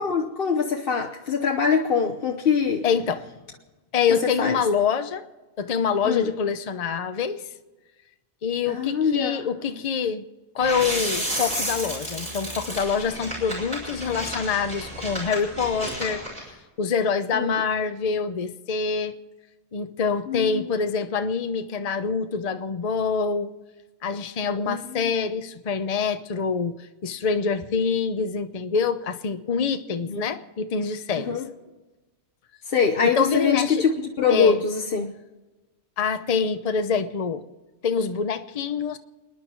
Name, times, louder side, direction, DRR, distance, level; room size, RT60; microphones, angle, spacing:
voice 1, 0.0-2.8 4.4-4.6 6.0-6.3 8.7-9.5 17.3-17.5 20.3-20.7 24.7-25.1 30.1-30.2 31.2-31.4 32.7-35.1, left 6 dB, 55° left, 1 dB, 1.1 m, -23 dB
voice 2, 2.8-3.3 3.9-5.2 5.6-7.4 8.4-10.2 10.5-16.2 16.8-19.2 19.7-23.5 24.0-31.4 33.0-33.8 34.3-34.6 36.0-37.4 37.8-39.0, left 5 dB, 40° left, 9 dB, 0.8 m, -25 dB
sound 1, 10.6-16.4, equal, 35° right, 6.2 m, -31 dB
30.0 x 10.5 x 4.6 m, 1.2 s
omnidirectional pair, 1.1 m